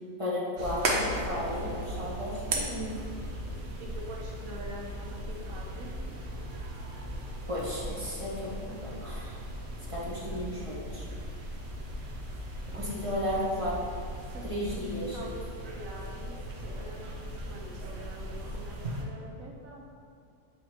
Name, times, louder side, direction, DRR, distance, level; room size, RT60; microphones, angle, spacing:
voice 1, 0.2-2.9 7.5-9.4 9.9-11.0 12.7-13.7 14.4-15.2, left 1 dB, 25° right, -6 dB, 1.0 m, -34 dB
sound 1, 0.6-19.0, right 1 dB, 55° right, 1.0 m, -37 dB
voice 2, 3.9-5.9 13.2-13.7 14.3-14.4 14.7-19.8, right 1 dB, 85° right, -1 dB, 1.4 m, -45 dB
7.7 x 4.9 x 2.9 m, 2.3 s
omnidirectional pair, 1.4 m